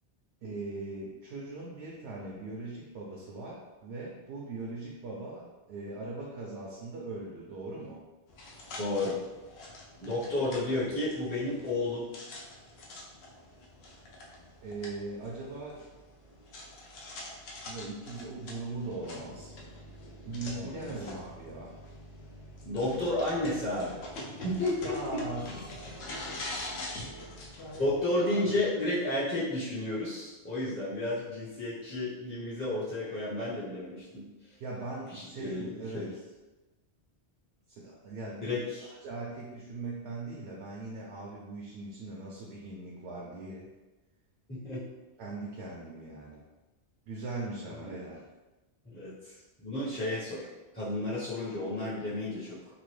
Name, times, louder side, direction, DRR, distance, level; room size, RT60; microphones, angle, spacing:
voice 1, 0.4-8.0 14.6-15.8 17.7-19.5 20.3-21.7 24.8-25.5 28.3-28.9 34.6-36.2 37.7-38.4 39.0-43.7 45.2-46.4 47.1-48.2, right 2 dB, 85° right, -4 dB, 0.9 m, -40 dB
sound 1, 8.3-28.0, left 1 dB, 75° left, 0.8 m, -45 dB
voice 2, 8.8-9.2 10.0-12.1 20.5-20.9 22.7-24.0 24.4-24.7 27.8-34.2 35.1-35.7 35.9-36.1 38.4-38.9 44.5-44.8 47.7-48.0 48.9-49.3 49.6-50.5 50.7-52.6, left 1 dB, 10° left, -11 dB, 0.6 m, -32 dB
2.8 x 2.4 x 3.1 m, 1.1 s
omnidirectional pair, 1.1 m